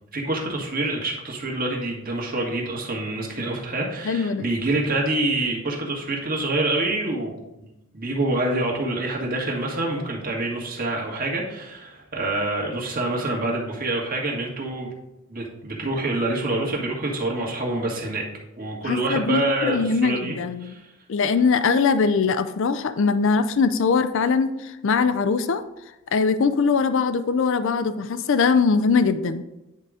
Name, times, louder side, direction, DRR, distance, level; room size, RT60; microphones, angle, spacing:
voice 1, 0.1-7.7 7.9-14.9 15.3-18.2 18.6-20.9, right 2 dB, 40° right, -2 dB, 1.7 m, -26 dB
voice 2, 4.0-4.5 18.9-20.7 21.1-25.6 26.1-29.4, left 5 dB, 60° left, 12 dB, 0.4 m, -21 dB
9.9 x 3.8 x 4.8 m, 0.96 s
head